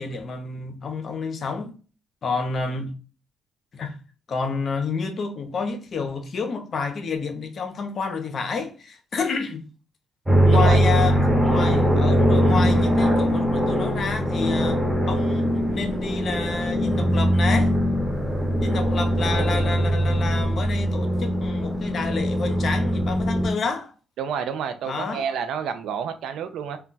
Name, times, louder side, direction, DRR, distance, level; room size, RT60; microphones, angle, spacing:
voice 1, 0.0-1.7 2.2-2.9 3.7-4.0 4.3-9.6 10.4-14.8 15.1-17.7 18.6-23.9 24.8-25.4, left 4 dB, 50° left, 0.6 m, -29 dB
sound 1, 10.3-23.5, equal, 10° right, 0.9 m, -21 dB
voice 2, 24.2-26.8, right 7 dB, 80° right, 0.4 m, -29 dB
2.2 x 2.2 x 3.8 m
cardioid pair, 90°, 0 cm